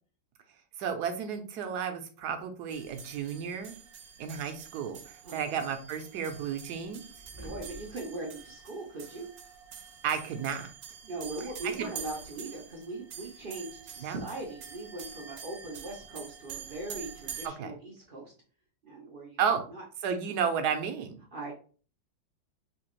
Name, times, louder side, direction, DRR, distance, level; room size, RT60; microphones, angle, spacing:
voice 1, 0.8-3.7 4.2-7.0 10.0-10.7 11.8-11.9 14.0-14.2 17.4-17.7 19.4-19.6 20.0-21.1, right 7 dB, 70° right, 6 dB, 1.1 m, -32 dB
sound 1, 2.7-17.5, right 8 dB, 90° right, 1.2 m, -46 dB
voice 2, 5.2-5.6 7.4-9.3 11.0-18.3 18.8-19.4 19.7-19.8 21.3-21.5, right 2 dB, 55° right, -1 dB, 0.6 m, -40 dB
sound 2, 7.0-8.2 9.1-9.2, equal, 15° right, 0.6 m, -48 dB
3.4 x 2.8 x 3.0 m, 0.39 s
omnidirectional pair, 1.9 m